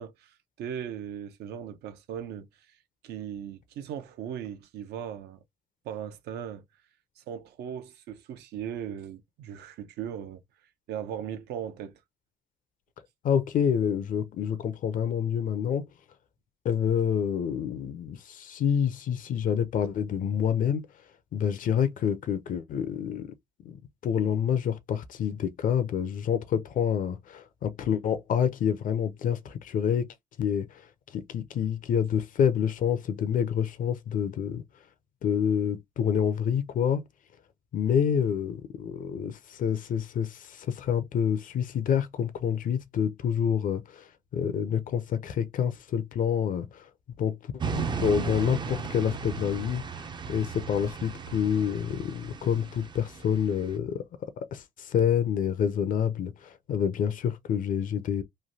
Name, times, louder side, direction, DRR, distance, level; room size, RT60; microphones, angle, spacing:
voice 1, 0.0-2.8 3.0-5.4 5.8-6.6 7.2-10.4 10.9-12.0, right 9 dB, 75° right, 0.7 m, -38 dB
voice 2, 13.2-15.9 16.6-20.9 21.3-23.3 23.6-30.1 30.4-30.8 31.1-34.6 35.2-37.0 37.7-46.9 47.2-47.3 47.7-49.8 50.3-54.0 54.4-58.2, left 8 dB, 50° left, 0.5 m, -27 dB
sound 1, 47.6-53.7, right 5 dB, 25° right, 0.4 m, -35 dB
3.2 x 2.2 x 2.6 m
cardioid pair, 110°, 17 cm